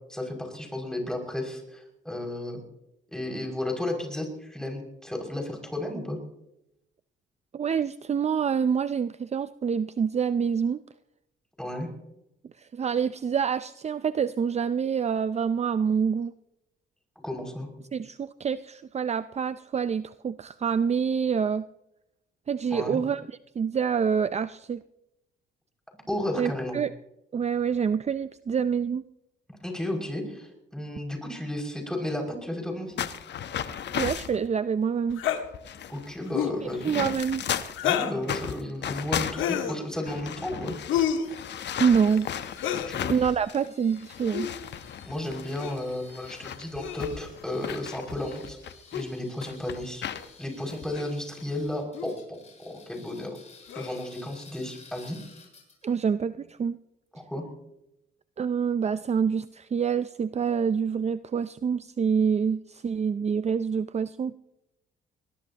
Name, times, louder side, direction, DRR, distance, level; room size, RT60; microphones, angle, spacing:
voice 1, 0.0-2.6 3.1-6.2 11.6-11.9 17.2-17.7 22.7-23.0 26.1-26.8 29.6-33.1 35.9-37.1 37.8-40.8 42.8-43.2 45.1-48.6 48.9-50.0 50.4-53.4 53.7-55.2 57.2-57.4, left 1 dB, 5° left, 1 dB, 6.2 m, -33 dB
voice 2, 7.5-10.8 12.6-16.3 17.9-21.7 22.5-24.8 26.4-26.9 27.3-29.0 33.9-35.2 36.8-37.4 41.8-42.3 43.1-44.5 55.8-56.8 58.4-64.4, right 6 dB, 35° right, 13 dB, 0.5 m, -26 dB
sound 1, 33.0-34.4 35.1-35.2 35.4-37.9 38.2-43.7 44.0-49.0 49.4-50.3 50.7-50.9 51.4-51.7, left 9 dB, 60° left, 1.1 m, -35 dB
sound 2, 35.2-35.4 36.3-36.6 37.7-38.2 39.3-39.8 40.9-41.3 42.5-42.9 44.2-44.5 45.6-45.8 46.8-47.3 48.9-49.1 50.1-50.2 50.9-51.1 51.9-52.1 53.7-54.1, left 9 dB, 85° left, 1.7 m, -29 dB
sound 3, 41.2-56.0, left 4 dB, 35° left, 7.5 m, -54 dB
22.0 x 20.0 x 3.0 m, 0.86 s
cardioid pair, 90°, 20 cm